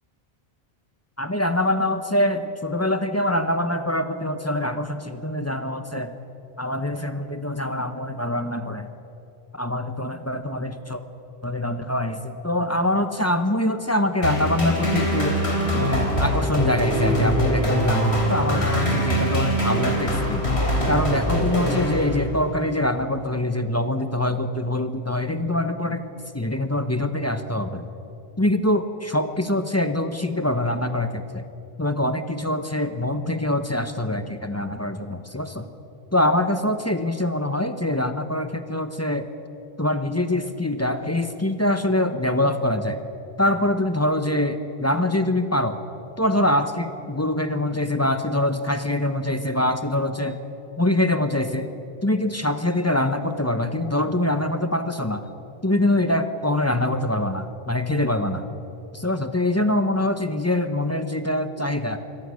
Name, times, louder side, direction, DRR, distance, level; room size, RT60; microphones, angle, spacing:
voice 1, 1.2-6.1 6.6-8.9 9.5-11.0 11.4-15.4 15.7-20.5 20.9-26.0 26.3-27.8 28.4-31.4 31.8-35.7 36.1-39.3 39.8-43.0 43.4-45.8 46.2-50.4 50.8-51.7 52.0-55.3 55.6-58.5 58.9-62.0, left 1 dB, 15° left, 9 dB, 0.9 m, -24 dB
sound 1, 14.2-22.5, equal, 85° left, 3.8 m, -23 dB
25.0 x 17.5 x 6.4 m, 2.9 s
omnidirectional pair, 1.1 m